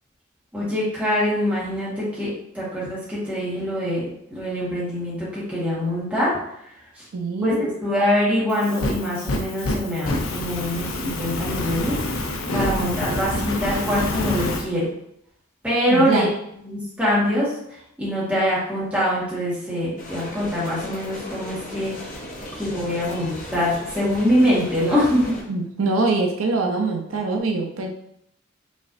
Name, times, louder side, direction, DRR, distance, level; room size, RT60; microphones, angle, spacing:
voice 1, 0.5-6.3 7.0-7.1 7.4-12.0 12.5-14.9 15.6-16.3 16.6-21.9 22.5-25.4, equal, 5° right, -9 dB, 1.7 m, -24 dB
voice 2, 7.1-7.7 12.8-12.9 15.9-16.3 25.5-27.9, right 3 dB, 90° right, 2 dB, 0.6 m, -23 dB
Fire, 8.5-14.6, left 1 dB, 80° left, 0.6 m, -27 dB
sound 1, 20.0-25.4, left 1 dB, 40° left, 1.0 m, -36 dB
5.1 x 3.2 x 2.7 m, 0.75 s
head